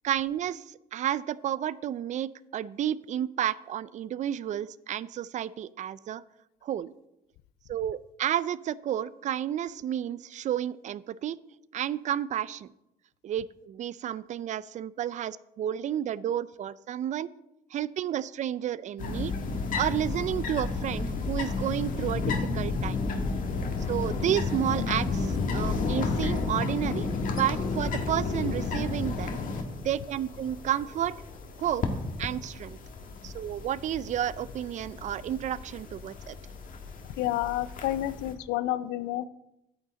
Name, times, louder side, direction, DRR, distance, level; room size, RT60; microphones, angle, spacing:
voice 1, 0.0-6.2 6.6-6.9 7.7-11.4 11.7-12.7 13.2-17.3 17.7-19.3 19.7-23.0 23.9-29.4 29.8-31.2 31.6-31.8 32.2-32.8 33.2-36.4, right 11 dB, 45° right, 19 dB, 0.4 m, -31 dB
sound 1, 19.0-38.3, left 4 dB, 50° left, 1.4 m, -32 dB
voice 2, 37.0-39.3, left 14 dB, 90° left, 17 dB, 0.4 m, -30 dB
9.1 x 8.9 x 3.7 m, 0.87 s
cardioid pair, 110°, 17 cm